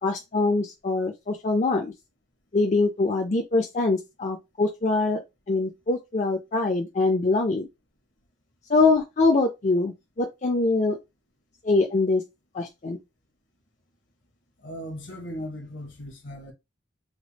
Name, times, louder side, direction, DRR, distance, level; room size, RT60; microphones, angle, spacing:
voice 1, 0.0-1.9 2.5-5.2 5.5-7.7 8.7-11.0 11.6-12.2 12.5-13.0, left 3 dB, 40° left, 0.5 m, -23 dB
voice 2, 14.6-16.5, equal, 75° left, 1.2 m, -37 dB
3.3 x 2.1 x 3.9 m
head